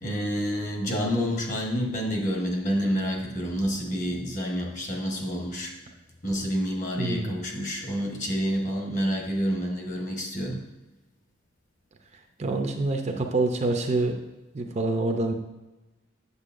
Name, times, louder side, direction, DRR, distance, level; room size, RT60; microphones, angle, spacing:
voice 1, 0.0-5.7 6.2-10.6, equal, 40° left, 0 dB, 1.2 m, -28 dB
voice 2, 7.0-7.3 12.4-14.1 14.5-15.3, right 2 dB, 35° right, 4 dB, 0.5 m, -26 dB
8.3 x 6.7 x 2.5 m, 1.1 s
head